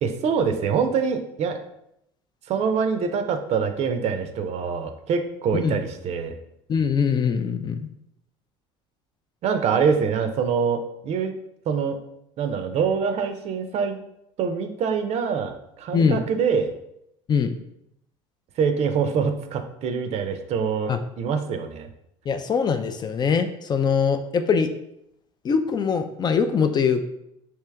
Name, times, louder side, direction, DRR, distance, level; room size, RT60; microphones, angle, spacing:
voice 1, 0.0-1.6 2.5-6.3 9.4-11.3 11.7-12.0 12.4-14.0 14.4-16.7 18.6-21.9, right 6 dB, 50° right, 7 dB, 0.5 m, -25 dB
voice 2, 6.7-7.9 15.9-16.2 17.3-17.5 20.9-21.0 22.3-24.7 25.4-27.1, left 6 dB, 30° left, 8 dB, 0.4 m, -22 dB
3.3 x 2.9 x 3.3 m, 0.79 s
hypercardioid pair, 85°, 14 cm